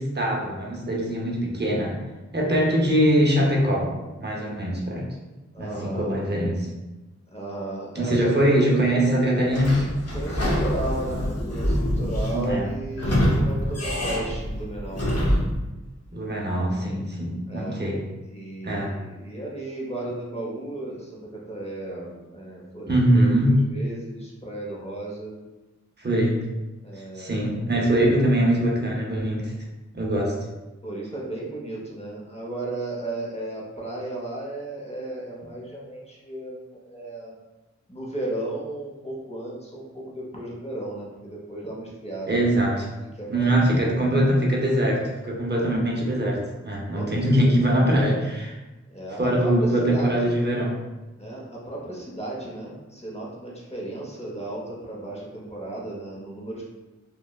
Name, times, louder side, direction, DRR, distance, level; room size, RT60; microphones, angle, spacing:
voice 1, 0.0-2.0 2.3-3.9 4.2-5.1 5.6-6.7 7.9-9.7 12.3-12.7 16.1-18.0 18.6-19.0 22.9-23.6 26.0-26.4 27.0-29.5 29.9-30.4 42.3-42.9 43.3-48.6 49.2-50.8, right 1 dB, 35° right, -2 dB, 0.6 m, -22 dB
voice 2, 5.5-6.1 7.3-8.3 10.1-15.1 17.5-17.8 18.3-25.4 26.8-27.8 30.8-37.3 37.9-42.5 43.2-43.6 46.8-47.1 48.9-50.1 51.2-56.7, right 2 dB, 20° left, -4 dB, 0.7 m, -35 dB
Sliding door / Squeak, 9.5-15.6, equal, 55° left, 0.6 m, -25 dB
2.9 x 2.1 x 2.2 m, 1.1 s
wide cardioid pair, 40°, 29 cm